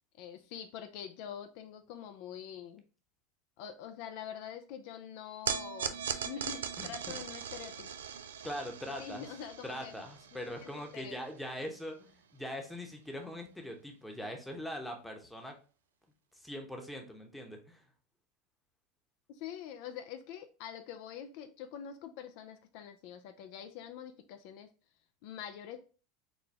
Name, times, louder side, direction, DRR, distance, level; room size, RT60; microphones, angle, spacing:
voice 1, 0.2-2.8 3.6-7.9 9.0-10.0 10.6-11.2 19.3-24.7 25.2-25.8, left 9 dB, 65° left, 7 dB, 0.4 m, -45 dB
sound 1, 5.5-11.9, right 8 dB, 90° right, 0.3 m, -40 dB
voice 2, 6.8-7.2 8.4-9.3 9.6-15.6 16.3-17.8, equal, 5° left, 3 dB, 0.9 m, -42 dB
4.2 x 2.2 x 3.3 m, 0.37 s
hypercardioid pair, 100°, 0 cm